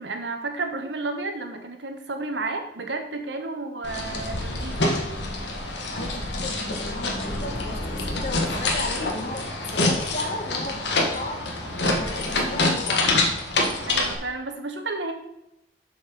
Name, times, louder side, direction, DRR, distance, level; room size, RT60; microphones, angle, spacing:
voice 1, 0.0-4.9 13.9-15.1, right 3 dB, 75° right, 5 dB, 1.3 m, -32 dB
sound 1, 3.8-14.1, left 2 dB, 70° left, 1.6 m, -26 dB
voice 2, 5.9-11.4 11.9-13.2, left 2 dB, 40° left, 3 dB, 1.4 m, -35 dB
7.1 x 6.2 x 5.4 m, 0.87 s
head